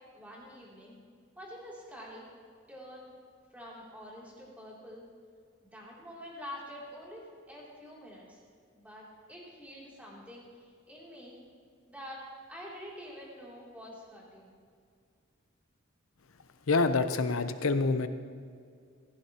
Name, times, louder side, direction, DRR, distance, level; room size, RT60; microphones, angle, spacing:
voice 1, 0.1-1.0 1.4-2.3 2.7-3.1 3.5-5.1 5.7-8.4 8.7-11.4 11.9-12.2 12.5-14.5, equal, 5° right, -5 dB, 2.9 m, -47 dB
voice 2, 16.7-18.1, left 3 dB, 90° left, 9 dB, 0.8 m, -26 dB
15.5 x 15.0 x 2.9 m, 2.2 s
head